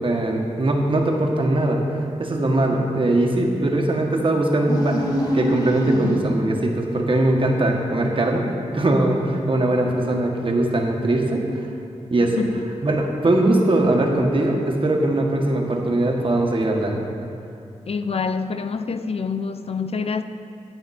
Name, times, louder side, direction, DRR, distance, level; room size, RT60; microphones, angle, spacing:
voice 1, 0.0-1.8 2.2-5.0 5.3-8.5 8.7-11.4 12.1-12.4 12.8-17.0, right 1 dB, 45° right, 1 dB, 1.5 m, -20 dB
sound 1, 4.6-6.6, left 1 dB, 30° left, 1.6 m, -24 dB
voice 2, 17.9-20.2, left 5 dB, 55° left, 9 dB, 0.4 m, -26 dB
13.5 x 9.3 x 4.3 m, 2.4 s
wide cardioid pair, 130°, 13 cm